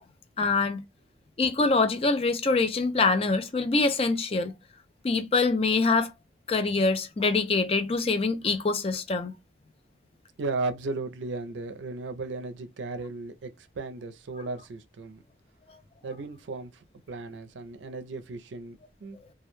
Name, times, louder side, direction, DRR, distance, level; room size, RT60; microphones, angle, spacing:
voice 1, 0.4-0.8 1.4-4.5 5.0-6.1 6.5-9.3 15.7-15.8, left 3 dB, 30° left, 0.4 m, -24 dB
voice 2, 10.4-15.2 16.0-19.2, right 3 dB, 80° right, 0.4 m, -35 dB
2.2 x 2.1 x 3.0 m
head